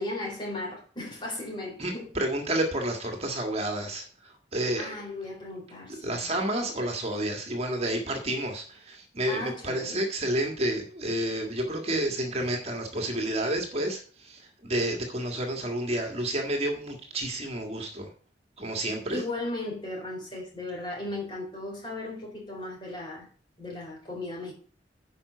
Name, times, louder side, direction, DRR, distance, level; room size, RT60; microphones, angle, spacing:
voice 1, 0.0-2.1 4.8-6.2 9.3-10.0 12.4-12.5 19.1-23.3 23.6-24.5, left 2 dB, 25° left, 4.4 m, -36 dB
voice 2, 1.8-4.9 5.9-18.1 18.6-19.2, right 1 dB, 35° right, 1.7 m, -30 dB
10.0 x 5.5 x 6.7 m
head